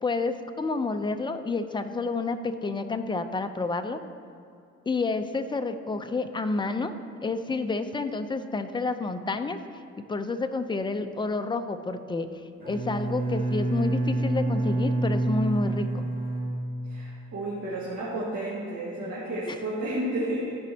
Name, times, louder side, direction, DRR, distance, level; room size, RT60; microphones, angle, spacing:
voice 1, 0.0-4.0 4.9-6.9 7.2-9.6 10.1-12.3 12.7-16.1 19.5-19.6, left 3 dB, 15° left, 8 dB, 0.5 m, -29 dB
Bowed string instrument, 12.6-17.3, right 2 dB, 30° right, 2.1 m, -28 dB
voice 2, 16.8-20.6, right 1 dB, 60° right, -8 dB, 1.8 m, -32 dB
14.5 x 5.3 x 2.8 m, 2.4 s
cardioid pair, 90°, 30 cm